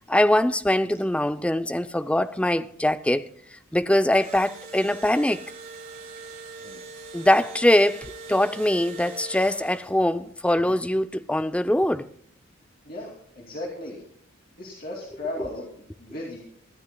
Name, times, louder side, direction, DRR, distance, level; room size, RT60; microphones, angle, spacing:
voice 1, 0.1-3.3 3.7-5.4 7.1-12.1, left 1 dB, 5° left, 0.5 m, -22 dB
Engine / Drill, 4.1-10.1, right 3 dB, 45° right, 5.0 m, -42 dB
voice 2, 12.8-14.0 14.6-16.4, left 1 dB, 45° left, 2.6 m, -36 dB
24.0 x 13.0 x 2.2 m
head